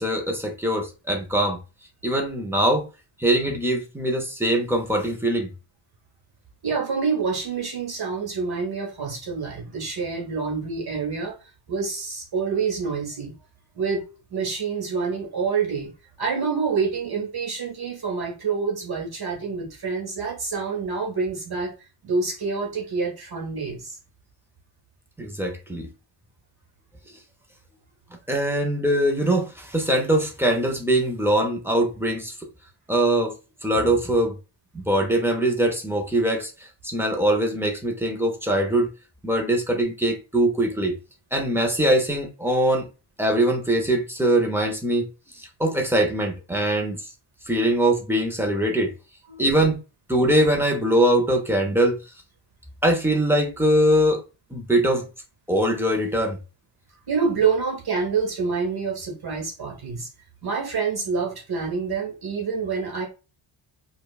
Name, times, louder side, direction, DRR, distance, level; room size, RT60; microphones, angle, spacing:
voice 1, 0.0-1.6 2.0-2.9 3.2-5.5 25.2-25.9 28.3-32.5 32.9-34.3 34.7-36.5 36.8-38.9 39.2-41.0 41.3-42.9 43.2-45.1 45.4-47.0 47.5-48.9 49.4-49.8 50.1-52.0 52.8-54.2 54.5-55.0 55.5-56.4, right 1 dB, 5° right, 0.6 m, -22 dB
voice 2, 6.6-11.3 11.7-13.3 13.8-15.9 16.2-21.7 22.0-24.0 49.3-49.4 57.1-60.1 60.4-63.1, right 5 dB, 50° right, 1.7 m, -27 dB
5.0 x 2.3 x 2.3 m
wide cardioid pair, 160°, 48 cm